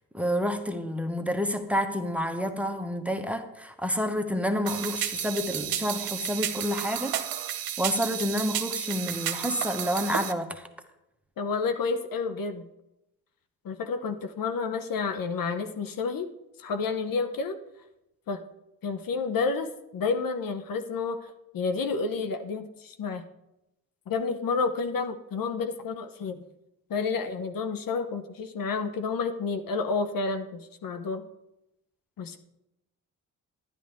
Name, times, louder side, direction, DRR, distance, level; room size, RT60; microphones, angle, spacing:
voice 1, 0.1-7.1 7.8-10.7, equal, 5° right, 7 dB, 1.2 m, -29 dB
sound 1, 4.7-10.3, right 11 dB, 60° right, 1.1 m, -32 dB
voice 2, 11.4-12.7 13.6-16.3 16.6-17.6 18.3-18.4 18.8-21.3 21.5-23.2 24.1-26.4 26.9-31.2 32.2-32.4, left 4 dB, 55° left, 8 dB, 1.0 m, -30 dB
11.0 x 10.5 x 3.6 m, 0.90 s
hypercardioid pair, 50°, 41 cm